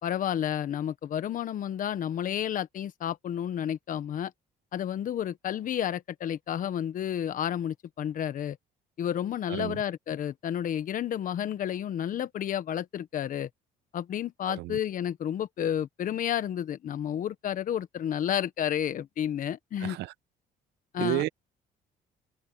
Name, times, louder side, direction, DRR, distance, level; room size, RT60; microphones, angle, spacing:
voice 1, 0.0-4.3 4.7-8.6 9.0-13.5 13.9-20.0 20.9-21.2, left 10 dB, 55° left, 1.3 m, -31 dB
voice 2, 9.5-9.8 14.5-14.8 19.8-20.1 21.0-21.3, right 18 dB, 80° right, 0.9 m, -31 dB
cardioid pair, 110°, 17 cm